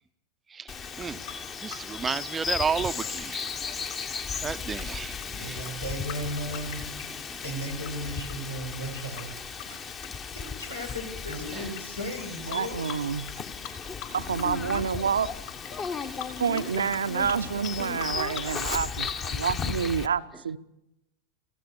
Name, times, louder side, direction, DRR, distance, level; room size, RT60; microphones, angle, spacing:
Bird vocalization bird call bird song, 0.7-20.1, left 6 dB, 25° left, 1.3 m, -35 dB
sound 1, 0.8-7.9 8.2-11.4 11.7-11.8 12.1-13.4 13.6-14.4 14.7-19.6, left 11 dB, 50° left, 4.9 m, -43 dB
voice 1, 1.6-3.5 4.1-5.6 7.3-7.4 11.5-11.7 15.9-16.1, right 6 dB, 15° right, 0.7 m, -32 dB
voice 2, 5.3-6.8 7.4-9.3 9.7-9.8 10.6-12.7, equal, 85° left, 7.1 m, -35 dB
voice 3, 12.5-13.3 14.1-15.3 16.4-20.6, right 6 dB, 70° right, 0.8 m, -28 dB
27.5 x 16.5 x 6.9 m
figure-of-eight pair, 90°, 0 cm